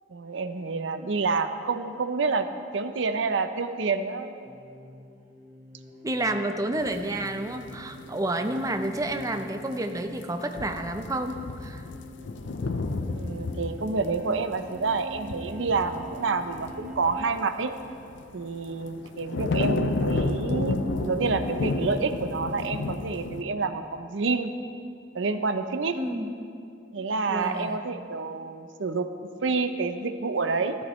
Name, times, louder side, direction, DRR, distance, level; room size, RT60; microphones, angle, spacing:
voice 1, 0.1-2.5 2.7-4.4 13.2-17.7 18.3-20.8 21.0-24.5 25.1-26.0 26.9-29.1 29.4-30.8, right 4 dB, 90° right, 9 dB, 0.6 m, -28 dB
sound 1, 4.4-17.5, equal, 45° right, 1.1 m, -47 dB
voice 2, 6.0-11.8 25.9-26.3 27.3-27.8, right 1 dB, 20° right, 6 dB, 0.5 m, -30 dB
sound 2, 6.8-8.3 8.7-9.3 9.6-9.8 10.1-10.2 10.6-18.2 18.7-23.4, left 2 dB, 70° left, 0.6 m, -32 dB
14.5 x 13.5 x 3.1 m, 2.4 s
head